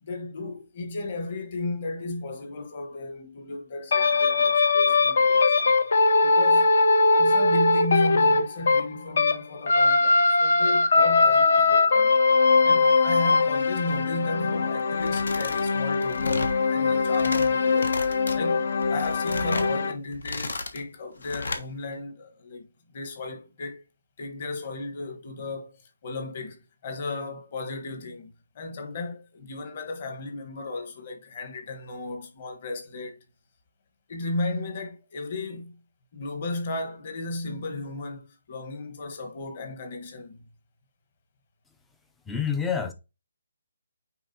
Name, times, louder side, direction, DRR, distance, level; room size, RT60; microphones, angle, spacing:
voice 1, 0.0-5.8 6.2-6.7 7.1-12.2 12.6-18.0 18.3-23.8 24.2-33.2 34.1-35.8 36.1-40.5, left 2 dB, 30° left, 1.4 m, -35 dB
sound 1, 3.9-9.4 9.7-19.9, left 3 dB, 50° left, 0.8 m, -21 dB
sound 2, 14.9-15.6 15.9-16.6 17.0-17.5 17.8-18.4 18.8-19.7 20.1-20.8 21.2-21.6, left 2 dB, 70° left, 1.3 m, -34 dB
voice 2, 42.3-42.9, left 6 dB, 5° left, 0.4 m, -27 dB
9.1 x 3.8 x 2.8 m
hypercardioid pair, 175°, 0 cm